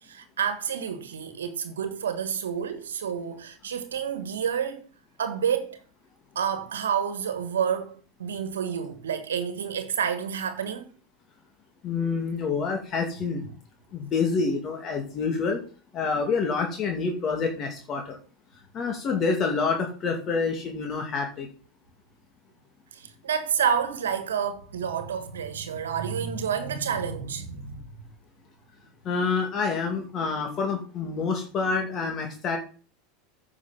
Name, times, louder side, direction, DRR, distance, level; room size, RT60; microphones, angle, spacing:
voice 1, 0.0-4.9 5.2-5.8 6.3-10.9 22.9-27.8, right 7 dB, 85° right, 1.3 m, -29 dB
voice 2, 11.8-13.4 13.9-15.6 15.9-18.2 18.7-21.5 29.0-32.6, left 4 dB, 40° left, 2.4 m, -27 dB
9.7 x 6.2 x 5.9 m
hypercardioid pair, 90°, 0 cm